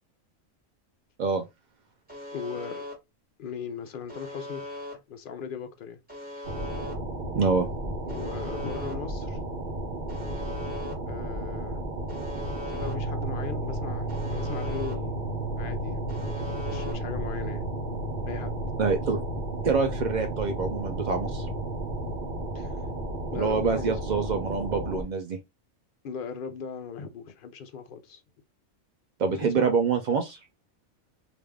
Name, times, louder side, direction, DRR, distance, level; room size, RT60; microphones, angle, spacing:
Alarm, 2.1-2.9 4.1-4.9 6.1-6.9 8.1-8.9 10.1-10.9 12.1-12.9 14.1-14.9 16.1-16.9, left 1 dB, 5° right, 1.2 m, -39 dB
voice 1, 2.3-2.8 3.4-4.7 4.9-6.0 8.0-9.4 11.1-11.8 12.7-15.3 15.6-16.4 16.7-17.7 18.3-18.6 22.5-22.9 23.3-24.0 26.0-28.2 29.3-29.7, left 6 dB, 65° left, 0.5 m, -38 dB
sound 1, 6.4-25.0, right 1 dB, 45° right, 0.7 m, -34 dB
voice 2, 7.3-7.7 18.8-19.2 19.6-21.5 23.3-25.4 29.2-30.4, right 5 dB, 75° right, 0.4 m, -26 dB
sound 2, 12.8-22.2, right 1 dB, 15° left, 1.2 m, -36 dB
3.3 x 2.5 x 3.5 m
omnidirectional pair, 1.4 m